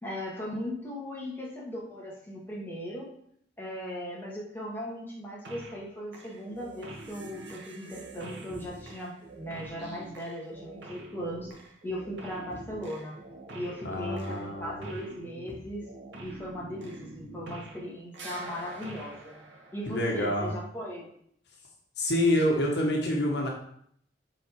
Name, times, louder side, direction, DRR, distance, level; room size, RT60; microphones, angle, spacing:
voice 1, 0.0-3.1 3.6-11.5 11.8-13.2 13.5-15.8 16.2-19.4 19.7-21.1, equal, 10° left, -5 dB, 2.2 m, -38 dB
sound 1, 5.4-5.9 6.1-17.9 18.1-20.3, right 2 dB, 85° right, 1.6 m, -45 dB
voice 2, 13.8-14.9 19.9-20.5 22.0-23.5, left 1 dB, 65° left, -1 dB, 1.5 m, -27 dB
8.0 x 4.1 x 4.8 m, 0.67 s
head